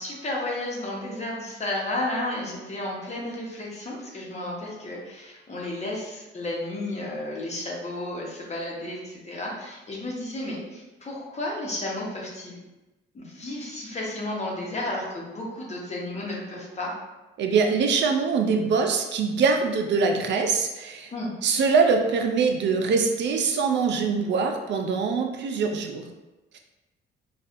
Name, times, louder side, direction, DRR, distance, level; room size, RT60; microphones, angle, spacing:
voice 1, 0.0-12.6 13.1-16.9 21.1-21.3, left 1 dB, 35° left, -3 dB, 1.0 m, -32 dB
voice 2, 17.4-21.1 21.4-26.1 26.5-26.6, right 5 dB, 65° right, 4 dB, 0.5 m, -23 dB
4.1 x 2.4 x 2.5 m, 1.1 s
cardioid pair, 90°, 20 cm